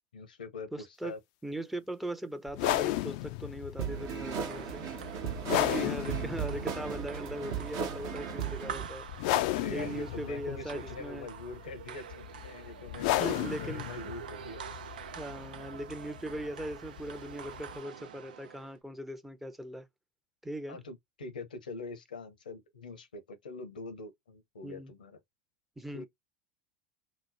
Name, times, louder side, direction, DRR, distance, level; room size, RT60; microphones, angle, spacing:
voice 1, 0.1-1.2 9.5-14.8 20.7-25.2 25.9-26.1, left 3 dB, 85° left, 0.8 m, -44 dB
voice 2, 0.7-1.1 1.4-4.8 5.6-9.1 9.4-11.3 13.0-13.9 15.2-19.9 20.4-20.8 24.6-24.9 25.8-26.0, right 1 dB, 5° right, 0.6 m, -39 dB
sound 1, 2.5-17.8, left 15 dB, 60° left, 0.4 m, -35 dB
sound 2, 3.8-8.9, right 7 dB, 55° right, 1.0 m, -36 dB
sound 3, 3.9-18.8, right 8 dB, 80° right, 0.5 m, -47 dB
3.0 x 2.0 x 4.0 m
hypercardioid pair, 90°, 5 cm